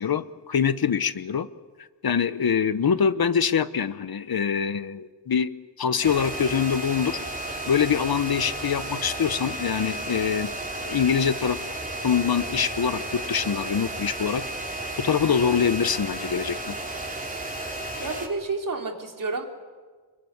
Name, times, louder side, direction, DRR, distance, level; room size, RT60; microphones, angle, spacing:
voice 1, 0.0-1.5 2.0-5.5 5.8-7.2 7.7-10.5 10.8-11.6 12.0-14.4 15.0-16.8, left 7 dB, 60° left, 13 dB, 1.1 m, -24 dB
sound 1, 6.0-18.3, right 1 dB, 20° right, 4.7 m, -33 dB
voice 2, 18.0-19.5, right 3 dB, 50° right, 3 dB, 3.6 m, -30 dB
26.5 x 22.5 x 9.7 m, 1.5 s
wide cardioid pair, 100°, 41 cm